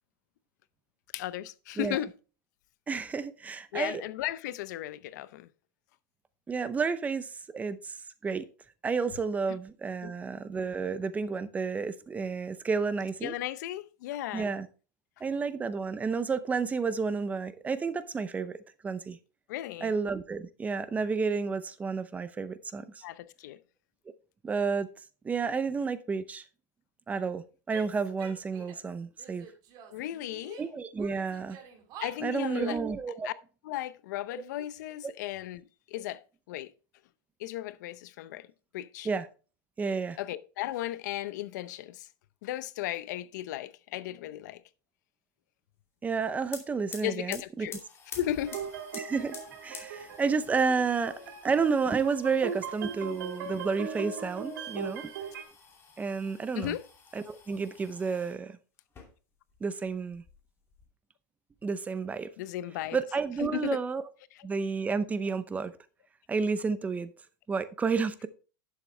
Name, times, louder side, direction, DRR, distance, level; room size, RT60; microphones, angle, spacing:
voice 1, 1.1-2.1 3.7-5.5 10.0-10.1 13.2-14.5 19.5-19.9 23.0-23.6 29.9-30.6 32.0-32.8 33.2-33.3 33.6-35.6 35.9-36.2 36.5-36.7 37.4-38.5 38.7-39.1 40.2-42.1 42.4-44.6 47.0-47.8 48.2-48.6 56.6-56.8 62.4-63.0 63.4-63.8, left 13 dB, 75° left, 0.6 m, -35 dB
voice 2, 2.9-4.0 6.5-8.0 8.2-8.5 8.8-13.3 14.3-14.7 15.2-18.6 18.8-19.2 19.8-23.0 24.4-24.9 25.2-26.4 27.1-29.5 30.6-31.6 32.2-33.3 34.3-34.4 39.0-39.3 39.8-40.2 46.0-47.7 48.9-51.1 51.4-55.1 56.0-56.8 57.1-58.6 59.6-60.2 61.6-62.3 62.9-64.0 64.4-65.7 66.3-67.1 67.5-68.3, right 5 dB, 15° right, 0.7 m, -31 dB
Female speech woman speaking / Yell, 27.7-28.9 29.2-30.7 31.0-32.8, right 8 dB, 45° right, 2.5 m, -48 dB
sound 1, 46.1-46.2 46.4-58.4 58.8-59.6 59.9-60.9, left 5 dB, 25° left, 2.6 m, -50 dB
sound 2, 48.5-55.4, right 6 dB, 85° right, 2.3 m, -39 dB
11.0 x 7.2 x 3.3 m
supercardioid pair, 140°, 10 cm